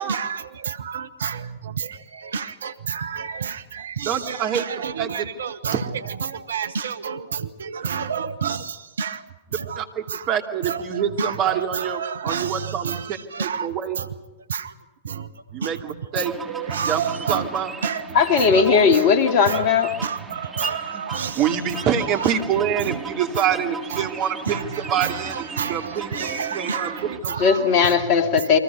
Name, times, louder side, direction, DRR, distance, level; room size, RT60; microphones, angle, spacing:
voice 1, 0.0-5.8 6.2-9.2 9.5-9.8 10.1-10.2 10.6-13.7 14.0-14.1 14.5-14.7 15.0-15.3 15.6-15.7 16.5-17.5 17.8-18.0 18.4-19.0 19.5-19.6 20.0-21.4 22.2-22.3 22.8-23.0 23.3-23.4 23.9-24.1 24.5-24.6 25.0-28.0, right 7 dB, 70° right, 13 dB, 1.1 m, -30 dB
voice 2, 4.0-4.6 5.0-5.2 5.7-5.8 8.5-8.6 9.5-14.0 15.5-16.3 16.8-17.7 21.3-27.4, right 8 dB, 40° right, 5 dB, 2.7 m, -26 dB
sound 1, 16.1-27.2, right 4 dB, 15° right, 3.9 m, -36 dB
voice 3, 18.1-19.9 27.4-28.6, left 6 dB, 45° left, 7 dB, 2.6 m, -17 dB
29.5 x 24.0 x 5.5 m, 1.1 s
figure-of-eight pair, 95°, 0 cm